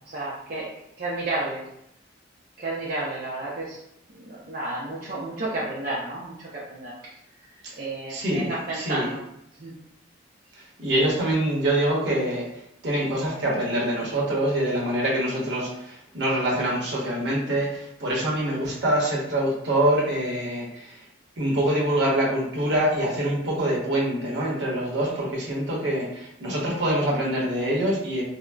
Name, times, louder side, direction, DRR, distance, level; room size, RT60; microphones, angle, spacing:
voice 1, 0.1-0.7 1.0-1.6 2.6-3.8 4.1-7.1 7.8-9.2 9.6-9.8 25.0-25.2, right 2 dB, 50° right, -7 dB, 0.5 m, -31 dB
voice 2, 8.1-9.1 10.6-21.0 21.4-28.2, right 1 dB, 70° right, -3 dB, 0.9 m, -25 dB
3.7 x 2.1 x 2.2 m, 0.78 s
head